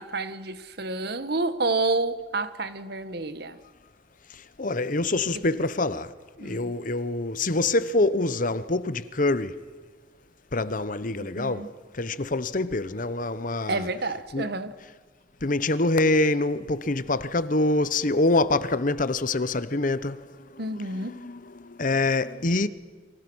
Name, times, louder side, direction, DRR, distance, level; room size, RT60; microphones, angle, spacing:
voice 1, 0.0-3.6 6.4-6.7 11.2-11.7 13.7-14.7 20.6-21.2, right 3 dB, 55° right, 1.4 m, -29 dB
voice 2, 4.3-6.1 6.4-9.6 10.5-13.9 14.3-14.5 15.4-22.7, left 2 dB, 45° left, 1.0 m, -26 dB
30.0 x 25.5 x 6.3 m
head